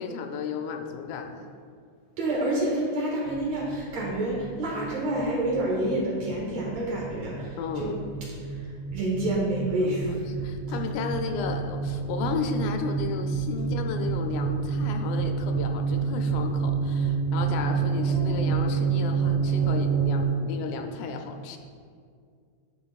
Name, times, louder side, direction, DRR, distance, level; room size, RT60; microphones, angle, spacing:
voice 1, 0.0-1.4 7.6-8.0 9.8-21.6, left 5 dB, 85° left, 5 dB, 2.0 m, -33 dB
voice 2, 2.2-7.9 8.9-10.2 17.9-18.5, right 1 dB, 65° right, -6 dB, 2.9 m, -28 dB
sound 1, 3.3-20.2, right 5 dB, 60° left, 1.5 m, -28 dB
11.0 x 4.7 x 2.4 m, 2.2 s
omnidirectional pair, 3.4 m